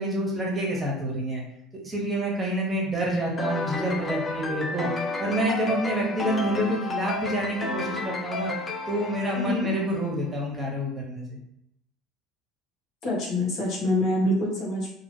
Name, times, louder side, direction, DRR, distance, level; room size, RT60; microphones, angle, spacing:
voice 1, 0.0-1.4 1.8-4.9 5.2-8.5 8.9-11.4, right 1 dB, 20° right, -2 dB, 1.3 m, -28 dB
sound 1, 3.4-10.0, left 3 dB, 25° left, 0.5 m, -32 dB
voice 2, 9.4-9.7 13.0-14.9, left 1 dB, 50° left, -5 dB, 1.3 m, -25 dB
2.8 x 2.8 x 3.0 m, 0.79 s
hypercardioid pair, 65°, 0 cm